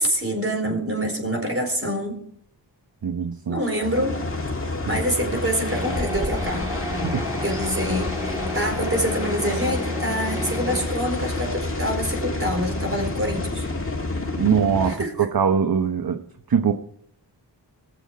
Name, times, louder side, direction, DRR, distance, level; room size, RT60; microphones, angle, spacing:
voice 1, 0.0-2.2 3.5-4.2 4.9-6.7 7.4-13.7 14.9-15.1, equal, 30° right, 3 dB, 4.3 m, -26 dB
voice 2, 3.0-3.6 4.9-5.0 7.0-7.3 14.4-16.7, right 7 dB, 55° right, 7 dB, 0.9 m, -22 dB
sound 1, 3.8-14.9, left 2 dB, 30° left, 1.8 m, -29 dB
sound 2, 5.7-10.9, equal, 10° right, 2.4 m, -32 dB
19.5 x 7.1 x 5.1 m, 0.65 s
wide cardioid pair, 70°, 44 cm